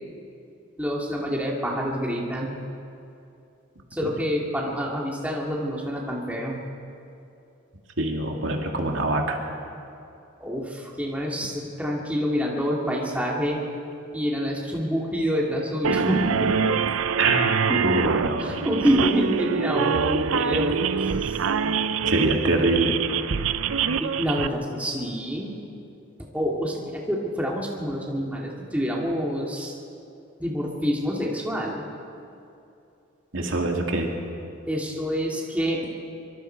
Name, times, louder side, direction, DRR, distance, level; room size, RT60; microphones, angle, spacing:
voice 1, 0.8-2.6 3.9-6.6 10.4-13.6 14.1-16.5 17.7-17.8 18.4-20.8 21.2-21.4 24.0-25.6 26.3-29.7 30.4-31.8 34.7-35.8, equal, 5° right, -3 dB, 2.3 m, -27 dB
voice 2, 8.0-9.4 17.2-17.4 17.8-18.6 22.1-23.0 33.3-34.1, right 2 dB, 70° right, 1 dB, 2.3 m, -24 dB
sound 1, 15.8-24.5, right 6 dB, 90° right, 0.6 m, -25 dB
25.0 x 24.0 x 4.6 m, 2.7 s
head